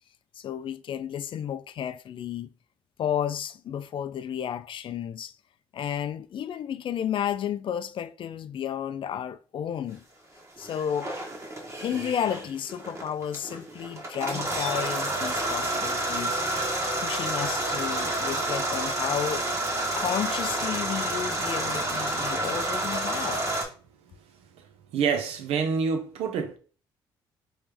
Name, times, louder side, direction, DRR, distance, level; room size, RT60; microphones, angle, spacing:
voice 1, 0.4-2.5 3.0-5.3 5.7-10.0 10.6-11.1 11.8-16.4 17.0-19.5 19.9-23.4, left 9 dB, 55° left, 0.4 m, -32 dB
sound 1, 10.6-23.6, right 1 dB, 30° right, 1.4 m, -29 dB
voice 2, 22.1-22.5 24.5-26.6, right 6 dB, 75° right, 0.7 m, -28 dB
3.2 x 3.1 x 3.4 m
supercardioid pair, 60°, 10 cm